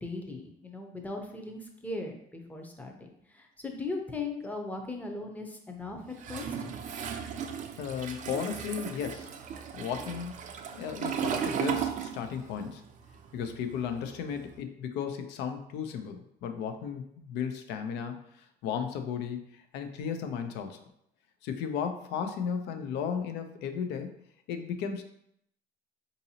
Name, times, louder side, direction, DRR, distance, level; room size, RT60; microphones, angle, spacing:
voice 1, 0.0-6.7, left 3 dB, 10° left, 3 dB, 0.6 m, -38 dB
Toilet flush, 6.2-12.6 12.9-14.5, right 8 dB, 50° right, 0.4 m, -35 dB
voice 2, 7.8-9.3 9.7-10.3 10.8-12.8 13.3-20.8 21.4-24.1 24.5-25.0, left 7 dB, 85° left, 7 dB, 0.5 m, -35 dB
3.8 x 2.6 x 2.8 m, 0.73 s
cardioid pair, 110°, 17 cm